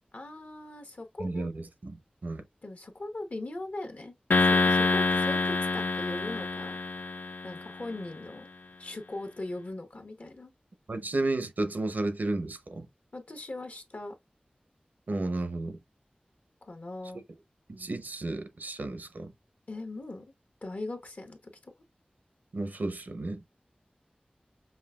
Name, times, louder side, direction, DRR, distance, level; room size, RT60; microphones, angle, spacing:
voice 1, 0.1-1.5 2.6-4.1 4.4-6.8 7.4-8.5 8.8-10.5 13.1-14.1 16.6-17.2 19.7-20.3 20.6-21.7, left 2 dB, 60° left, 1.0 m, -40 dB
voice 2, 1.2-2.0 2.2-2.4 10.9-12.9 15.1-15.8 17.7-19.3 22.5-23.4, right 2 dB, 80° right, 0.7 m, -32 dB
sound 1, 4.3-7.8, left 3 dB, 80° left, 0.4 m, -26 dB
5.5 x 2.4 x 2.4 m
wide cardioid pair, 70°, 3 cm